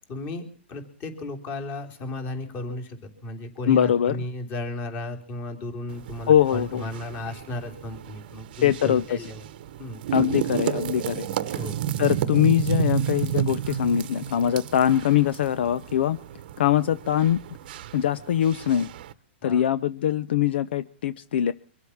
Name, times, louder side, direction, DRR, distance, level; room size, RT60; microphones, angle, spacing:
voice 1, 0.1-9.4 9.8-10.0 11.5-11.8 19.4-19.6, left 2 dB, 25° left, 4 dB, 3.2 m, -34 dB
voice 2, 3.7-4.2 6.3-6.9 8.6-9.0 10.1-11.6 12.0-16.2 16.6-17.4 17.9-18.9 19.4-21.5, left 10 dB, 60° left, 15 dB, 0.7 m, -22 dB
sound 1, 5.9-19.1, right 11 dB, 50° right, 1.0 m, -32 dB
24.0 x 8.2 x 7.1 m, 0.43 s
hypercardioid pair, 160°, 6 cm